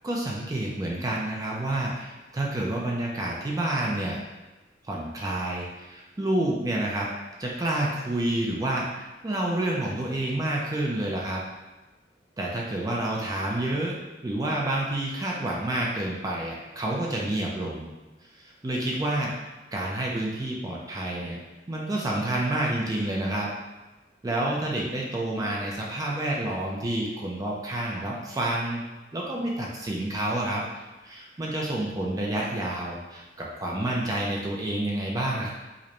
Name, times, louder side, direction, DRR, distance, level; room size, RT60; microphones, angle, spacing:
voice 1, 0.0-4.2 4.9-7.1 7.4-11.4 12.4-14.0 14.2-17.9 18.3-19.3 19.7-21.4 21.7-23.5 24.2-28.8 29.1-30.6 31.0-35.5, right 1 dB, 20° right, -3 dB, 0.4 m, -29 dB
4.9 x 2.1 x 2.9 m, 1.1 s
head